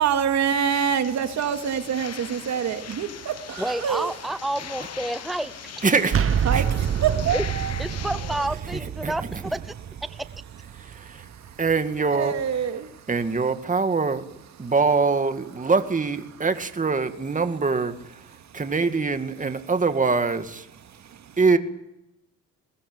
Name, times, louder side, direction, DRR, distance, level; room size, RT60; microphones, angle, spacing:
voice 1, 0.0-4.2 6.4-7.8 10.7-11.6 12.1-13.1 14.6-14.7 18.4-18.6 20.9-21.4, right 8 dB, 65° right, 7 dB, 2.4 m, -27 dB
sound 1, 0.7-8.5, left 9 dB, 55° left, 1.4 m, -40 dB
voice 2, 3.6-5.5 7.3-7.4 7.8-9.2 9.5-9.7 10.0-10.3, right 1 dB, ahead, 13 dB, 0.8 m, -29 dB
voice 3, 5.8-6.2 6.5-6.6 8.7-9.4 10.7-11.3 11.6-12.3 13.1-20.7 21.4-21.6, right 4 dB, 25° right, 8 dB, 2.2 m, -24 dB
sound 2, 6.1-11.8, right 8 dB, 45° right, 1.1 m, -28 dB
21.5 x 19.5 x 8.7 m, 0.87 s
cardioid pair, 90°, 30 cm